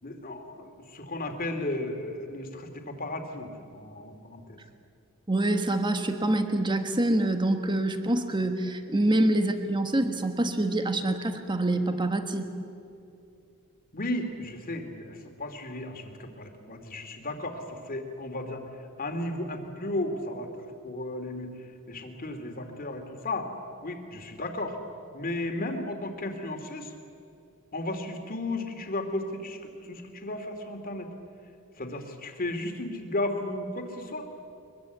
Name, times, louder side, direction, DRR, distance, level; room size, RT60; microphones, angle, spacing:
voice 1, 0.0-4.6 13.9-18.6 19.0-20.5 20.8-21.5 21.9-23.5 23.8-24.8 25.1-26.9 27.7-31.1 31.8-34.3, left 1 dB, 40° left, 5 dB, 2.7 m, -34 dB
voice 2, 5.3-12.5, right 1 dB, 20° right, 7 dB, 1.5 m, -26 dB
23.0 x 22.5 x 8.3 m, 2.5 s
head